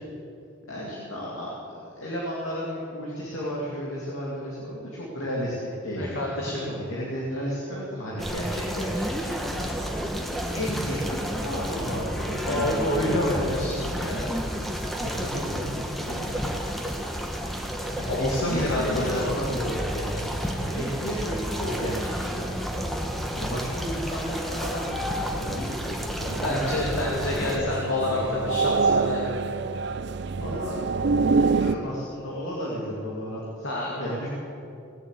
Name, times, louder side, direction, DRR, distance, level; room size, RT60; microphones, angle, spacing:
voice 1, 0.7-14.2 14.8-16.9 18.0-28.6 30.4-30.8 31.2-33.7 34.0-34.3, equal, 90° left, -5 dB, 2.3 m, -34 dB
voice 2, 6.0-6.8 12.4-14.3 18.1-19.2 26.4-29.4 33.6-34.3, left 1 dB, 65° left, -3 dB, 2.1 m, -28 dB
sound 1, 8.2-27.6, equal, ahead, 1.1 m, -31 dB
sound 2, 26.2-31.7, right 4 dB, 55° right, 0.4 m, -26 dB
18.0 x 7.3 x 8.3 m, 2.6 s
head